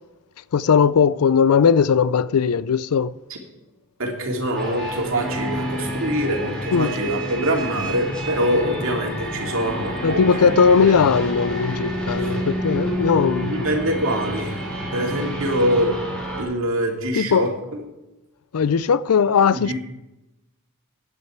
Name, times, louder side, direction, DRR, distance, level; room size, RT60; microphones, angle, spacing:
voice 1, 0.5-3.1 6.7-6.9 10.0-13.6 17.2-17.5 18.5-19.7, left 6 dB, 85° left, 0.4 m, -18 dB
voice 2, 4.0-11.0 12.2-12.3 13.4-14.6 14.9-15.9 16.4-17.8 19.5-19.7, equal, 65° right, 2.5 m, -24 dB
sound 1, 4.5-16.4, equal, 5° left, 3.7 m, -29 dB
15.5 x 9.9 x 4.5 m
head